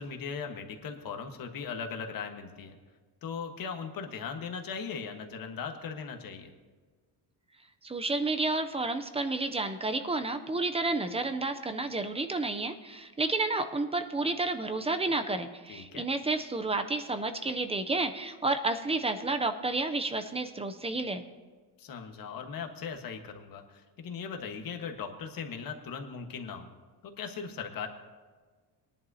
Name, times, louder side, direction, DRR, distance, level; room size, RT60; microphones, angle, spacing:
voice 1, 0.0-2.8 3.2-6.5 15.7-16.1 21.8-26.7 27.0-27.9, left 6 dB, 50° left, 5 dB, 1.4 m, -39 dB
voice 2, 7.8-21.2, right 3 dB, 15° right, 8 dB, 0.5 m, -31 dB
21.0 x 11.0 x 2.8 m, 1.4 s
cardioid pair, 150°, 43 cm